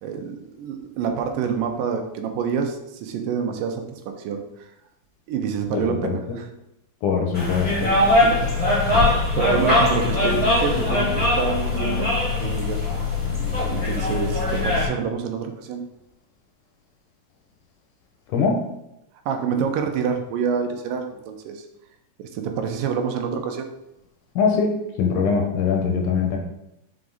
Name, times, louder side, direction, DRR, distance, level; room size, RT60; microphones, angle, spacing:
voice 1, 0.0-4.7 5.3-6.5 7.4-7.5 8.2-8.8 9.4-12.1 12.4-13.1 13.7-15.8 19.3-21.6 22.2-23.7, right 6 dB, 85° right, 5 dB, 2.4 m, -27 dB
voice 2, 5.7-6.4 7.0-7.9 18.3-18.6 24.4-26.4, left 5 dB, 75° left, 2 dB, 2.2 m, -22 dB
sound 1, 7.3-14.8, left 2 dB, 10° left, 2.0 m, -21 dB
5.9 x 4.8 x 4.0 m, 0.85 s
omnidirectional pair, 3.9 m